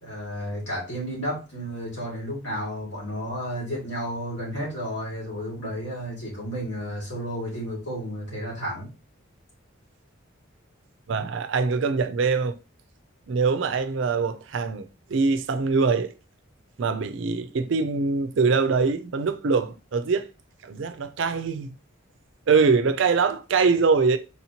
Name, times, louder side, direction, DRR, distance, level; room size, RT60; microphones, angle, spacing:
voice 1, 0.0-8.9, equal, 55° left, 2.1 m, -32 dB
voice 2, 11.1-12.6 13.3-16.1 16.8-20.3 20.6-21.7 22.5-24.2, right 4 dB, 65° right, 0.4 m, -23 dB
4.3 x 2.9 x 2.8 m
head